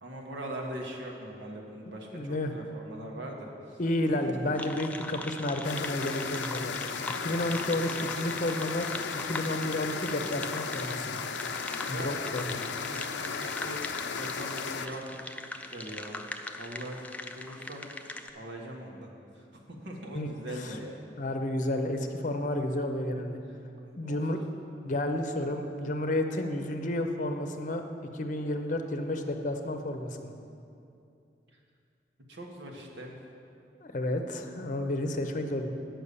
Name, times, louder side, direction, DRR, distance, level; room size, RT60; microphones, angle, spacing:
voice 1, 0.0-3.8 4.3-4.4 11.9-12.2 12.5-13.9 14.1-16.3 16.6-17.1 17.4-17.9 18.3-19.1 19.3-20.9 23.5-23.6 24.0-24.2 31.5-31.6 32.3-33.1, right 1 dB, 85° right, 0 dB, 1.5 m, -41 dB
voice 2, 2.1-2.7 3.8-6.9 7.2-8.9 9.2-11.2 11.9-12.6 20.1-20.4 21.2-23.4 23.9-24.4 24.8-27.8 28.1-30.3 33.8-35.7, left 1 dB, 45° left, 6 dB, 0.7 m, -31 dB
sound 1, 4.5-18.3, left 2 dB, 10° left, 0.4 m, -41 dB
sound 2, 5.6-14.9, left 6 dB, 80° left, 0.5 m, -35 dB
9.8 x 5.9 x 6.9 m, 2.6 s
head